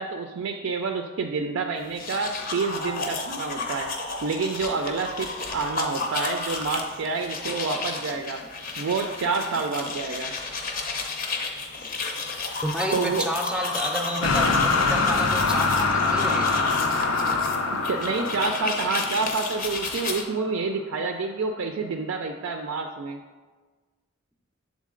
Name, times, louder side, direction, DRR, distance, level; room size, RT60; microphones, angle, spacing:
voice 1, 0.0-3.9 4.2-8.4 8.8-10.3 12.9-13.3 17.7-23.2, right 4 dB, 70° right, 4 dB, 0.4 m, -28 dB
sound 1, 1.8-20.2, left 3 dB, 40° left, 0.6 m, -32 dB
voice 2, 12.6-16.6, equal, 5° right, 3 dB, 0.5 m, -30 dB
sound 2, 14.2-20.3, left 3 dB, 85° left, 0.6 m, -25 dB
7.3 x 3.8 x 3.7 m, 1.4 s
head